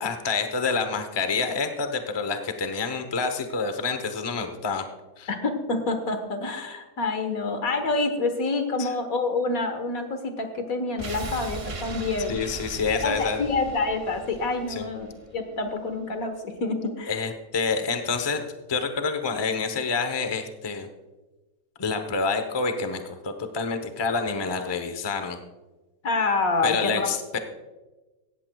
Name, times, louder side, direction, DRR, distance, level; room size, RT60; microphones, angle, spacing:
voice 1, 0.0-4.9 5.2-5.3 8.8-8.9 12.3-13.4 14.7-14.9 17.1-18.4 18.7-20.9 21.8-25.4 26.6-27.4, left 4 dB, 20° left, 7 dB, 0.8 m, -28 dB
voice 2, 5.3-12.4 13.0-17.3 26.0-27.4, left 3 dB, 75° left, 7 dB, 1.8 m, -27 dB
sound 1, 11.0-15.9 16.2-16.3, right 3 dB, 40° right, 0.5 m, -38 dB
17.0 x 14.0 x 2.3 m, 1.2 s
omnidirectional pair, 1.5 m